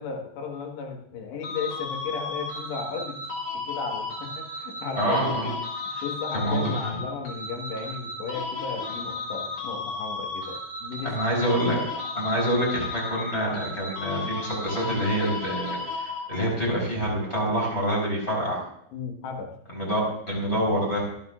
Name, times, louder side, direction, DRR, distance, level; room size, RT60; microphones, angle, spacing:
voice 1, 0.0-3.2 3.5-5.6 6.0-11.2 18.9-19.5, left 5 dB, 65° left, 2 dB, 3.5 m, -35 dB
sound 1, 1.4-16.7, left 3 dB, 50° left, 5.0 m, -34 dB
voice 2, 5.0-5.5 6.3-6.8 11.0-11.8 12.1-18.6 19.7-21.0, equal, 15° left, -4 dB, 3.8 m, -26 dB
25.5 x 8.7 x 2.5 m, 0.70 s
omnidirectional pair, 5.7 m